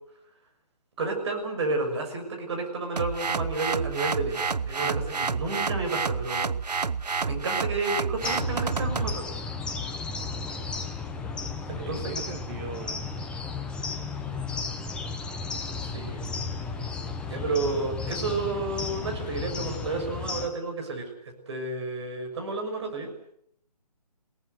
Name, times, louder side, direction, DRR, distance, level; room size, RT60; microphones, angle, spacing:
voice 1, 1.0-6.5 7.2-9.3 11.7-12.0 15.8-16.2 17.2-23.1, right 3 dB, 40° right, 3 dB, 6.5 m, -31 dB
sound 1, 3.0-9.2, right 5 dB, 75° right, 0.9 m, -29 dB
sound 2, 8.2-20.5, left 4 dB, 5° left, 1.0 m, -34 dB
voice 2, 11.2-13.1, right 6 dB, 20° right, 3 dB, 1.8 m, -41 dB
27.0 x 18.5 x 8.1 m, 0.70 s
figure-of-eight pair, 150°, 21 cm